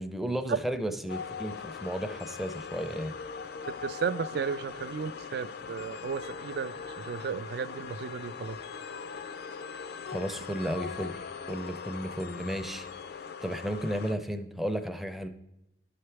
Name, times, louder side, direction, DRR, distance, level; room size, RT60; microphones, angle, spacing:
voice 1, 0.0-3.1 10.1-12.9 13.4-15.3, equal, ahead, 7 dB, 0.5 m, -34 dB
sound 1, 1.1-14.1, left 6 dB, 60° left, 0.4 m, -41 dB
voice 2, 3.8-6.7 7.1-8.6, right 6 dB, 65° right, 15 dB, 0.3 m, -34 dB
11.5 x 5.7 x 3.2 m, 0.89 s
head